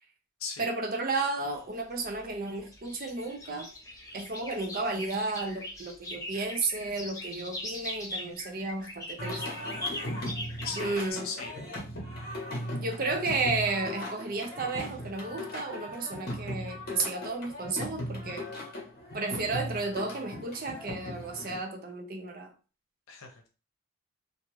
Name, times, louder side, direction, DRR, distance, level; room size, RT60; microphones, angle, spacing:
voice 1, 0.6-3.7 4.1-9.4 10.8-11.3 12.8-18.4 19.1-22.5, right 3 dB, 45° right, 4 dB, 0.5 m, -33 dB
sound 1, 1.5-11.1, left 1 dB, 15° left, 0.6 m, -41 dB
Singing, 9.2-21.6, left 1 dB, 45° left, 0.9 m, -38 dB
voice 2, 10.6-11.5 23.1-23.5, left 5 dB, 80° left, 3 dB, 0.7 m, -38 dB
2.5 x 2.4 x 3.0 m, 0.34 s
head